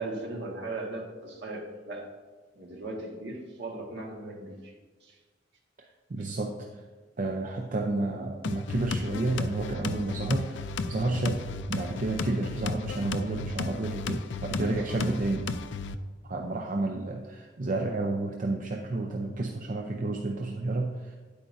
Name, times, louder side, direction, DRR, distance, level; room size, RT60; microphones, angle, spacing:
voice 1, 0.0-2.1 2.5-4.7 5.0-5.2, right 2 dB, 65° right, 0 dB, 1.7 m, -38 dB
voice 2, 6.1-6.8 7.2-15.5 16.2-21.2, right 2 dB, 45° right, 2 dB, 0.6 m, -31 dB
sound 1, 8.4-16.0, left 3 dB, 70° left, 0.4 m, -34 dB
9.8 x 8.6 x 2.7 m, 1.4 s
head